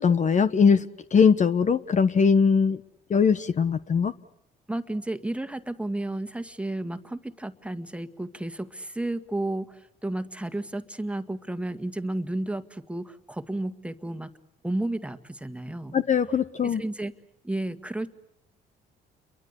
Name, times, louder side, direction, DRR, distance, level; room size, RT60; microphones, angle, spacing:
voice 1, 0.0-2.8 3.1-4.1 15.9-16.8, left 6 dB, 40° left, 1.1 m, -21 dB
voice 2, 4.7-14.3 14.6-16.0 16.6-17.1 17.4-18.1, right 1 dB, 5° right, 1.9 m, -32 dB
30.0 x 23.0 x 8.3 m
supercardioid pair, 75°, 18 cm